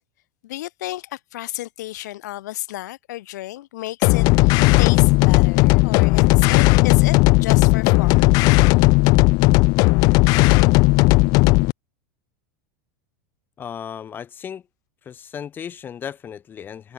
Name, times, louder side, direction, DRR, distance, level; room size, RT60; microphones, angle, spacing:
voice 1, 0.4-8.3, left 16 dB, 80° left, 2.9 m, -32 dB
sound 1, 4.0-11.7, left 25 dB, 45° left, 1.3 m, -15 dB
voice 2, 13.6-14.6 15.0-16.9, left 8 dB, 20° left, 6.8 m, -35 dB
supercardioid pair, 160°, 9 cm